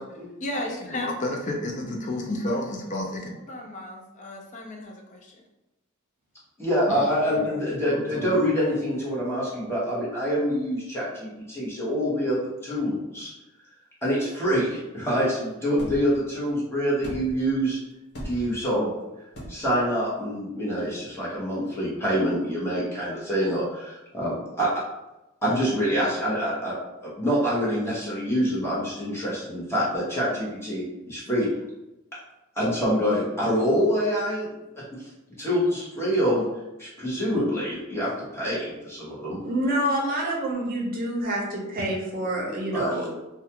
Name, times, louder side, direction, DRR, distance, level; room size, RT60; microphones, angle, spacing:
voice 1, 0.4-5.4 6.9-7.5 7.9-8.3, left 1 dB, 35° left, 1 dB, 0.4 m, -32 dB
voice 2, 6.6-13.3 14.0-17.8 18.2-18.9 19.5-24.7 25.4-26.7 27.0-31.5 32.5-34.5 34.9-35.0 35.4-36.4 36.8-39.4 42.7-42.9, equal, 10° left, -7 dB, 0.9 m, -26 dB
sound 1, 15.8-16.2 17.0-17.5 18.1-18.6 19.3-19.8, equal, 50° left, 0.8 m, -38 dB
voice 3, 39.4-43.1, right 1 dB, 40° right, -2 dB, 0.6 m, -27 dB
2.4 x 2.2 x 2.8 m, 0.97 s
head